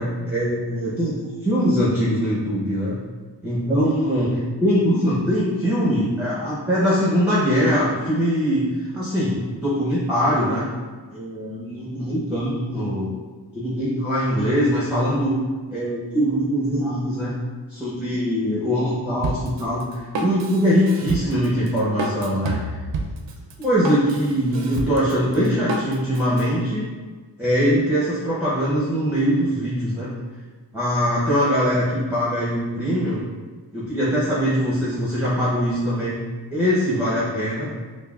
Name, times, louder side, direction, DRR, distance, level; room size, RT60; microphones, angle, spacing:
voice 1, 0.0-3.0 3.4-8.7 8.9-10.7 11.1-13.2 13.5-15.4 15.7-17.3 17.7-22.8 23.6-26.8 27.4-30.1 30.7-33.2 33.7-36.2 36.5-37.7, equal, 5° right, -8 dB, 0.7 m, -22 dB
Drum kit, 19.2-26.5, right 2 dB, 80° right, 0.5 m, -29 dB
5.6 x 2.0 x 2.4 m, 1.4 s
wide cardioid pair, 95°, 43 cm